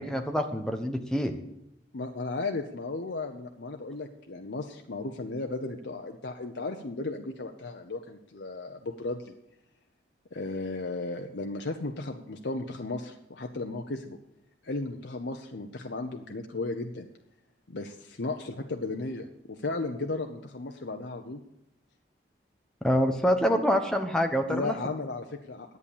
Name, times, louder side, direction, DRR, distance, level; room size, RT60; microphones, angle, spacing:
voice 1, 0.0-1.3 22.8-24.7, equal, 5° left, 4 dB, 1.0 m, -26 dB
voice 2, 1.9-9.3 10.3-14.2 14.6-17.1 17.7-21.4 24.5-25.8, left 3 dB, 75° left, 4 dB, 0.8 m, -35 dB
11.0 x 8.5 x 7.3 m, 0.84 s
head